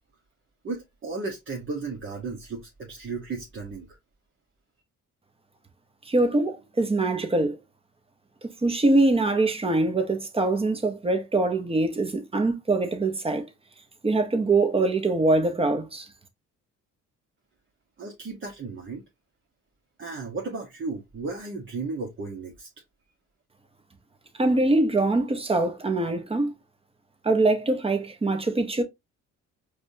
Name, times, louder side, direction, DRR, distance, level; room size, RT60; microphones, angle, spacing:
voice 1, 0.6-4.0 18.0-19.0 20.0-22.7, right 3 dB, 40° right, 1.2 m, -34 dB
voice 2, 6.1-7.6 8.4-13.5 14.0-16.1 24.4-26.5 27.2-28.8, right 2 dB, 20° right, 1.0 m, -23 dB
4.8 x 2.4 x 2.7 m
cardioid pair, 90°, 30 cm